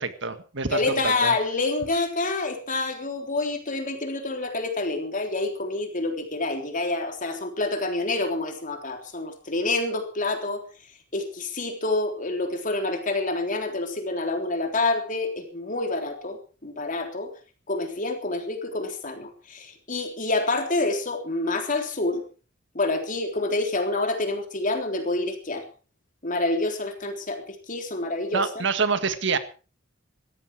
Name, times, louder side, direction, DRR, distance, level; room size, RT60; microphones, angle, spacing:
voice 1, 0.0-1.3 28.3-29.4, right 4 dB, 65° right, 10 dB, 1.7 m, -26 dB
voice 2, 0.7-10.6 11.1-17.3 17.7-22.2 22.7-25.7 26.2-28.7, left 2 dB, 45° left, 5 dB, 3.6 m, -27 dB
17.5 x 14.0 x 4.9 m, 0.37 s
head